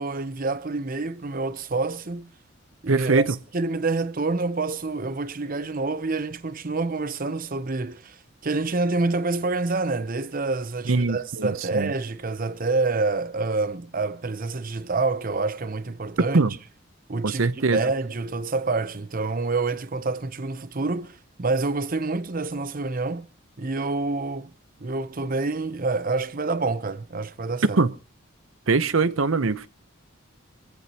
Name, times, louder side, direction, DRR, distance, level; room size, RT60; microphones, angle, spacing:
voice 1, 0.0-2.3 2.8-8.2 8.4-16.4 17.1-23.3 23.6-24.5 24.8-27.8, right 3 dB, 45° right, 0.8 m, -27 dB
voice 2, 2.9-3.2 10.9-11.9 16.3-16.5 17.2-17.8 27.8-27.9 28.7-29.7, right 3 dB, 90° right, 0.8 m, -22 dB
24.0 x 14.5 x 2.9 m
head